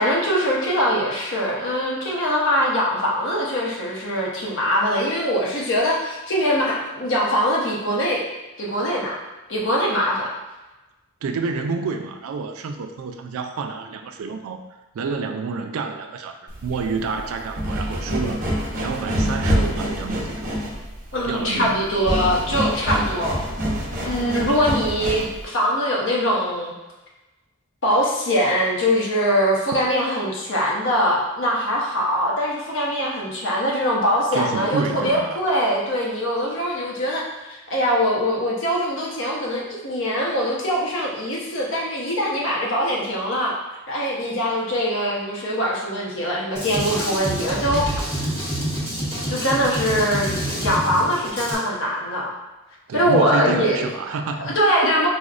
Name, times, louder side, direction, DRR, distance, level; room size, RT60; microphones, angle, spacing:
voice 1, 0.0-8.2 8.6-9.2 9.5-10.3 21.1-23.4 24.0-26.7 27.8-43.5 43.9-47.9 48.2-48.3 49.3-52.3 52.9-53.9 54.4-55.1, equal, 60° left, -3 dB, 0.7 m, -22 dB
voice 2, 11.2-14.6 14.9-18.4 18.8-20.6 21.2-21.9 34.3-35.4 52.9-54.6, right 4 dB, 80° right, 6 dB, 0.3 m, -28 dB
sound 1, 16.5-25.4, equal, 40° right, 0.7 m, -26 dB
Drum kit, 46.5-51.5, right 1 dB, 10° left, 1.0 m, -27 dB
4.9 x 2.1 x 2.4 m, 1.1 s
head